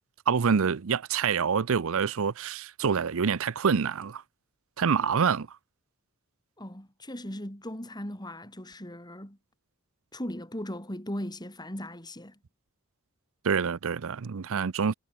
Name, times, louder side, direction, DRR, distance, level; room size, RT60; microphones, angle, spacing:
voice 1, 0.3-4.2 4.8-5.5 13.4-14.9, right 6 dB, 65° right, 0.6 m, -26 dB
voice 2, 6.6-9.4 10.1-12.4, left 1 dB, 20° left, 5.4 m, -38 dB
head